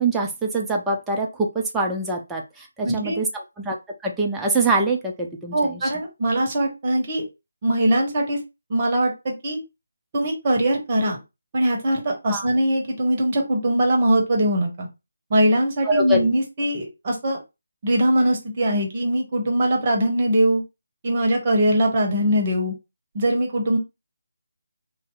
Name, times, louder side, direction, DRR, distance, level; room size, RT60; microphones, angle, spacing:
voice 1, 0.0-3.3 3.6-3.8 4.0-5.9 12.3-12.5 15.8-16.3, right 2 dB, 5° right, -1 dB, 0.4 m, -24 dB
voice 2, 2.8-3.2 5.5-7.2 7.6-8.4 8.7-9.6 10.1-11.2 11.5-14.9 15.3-17.4 17.8-20.6 21.0-22.7 23.1-23.8, right 1 dB, 30° right, 0 dB, 0.9 m, -21 dB
2.6 x 2.0 x 3.6 m, 0.25 s
figure-of-eight pair, 150°, 0 cm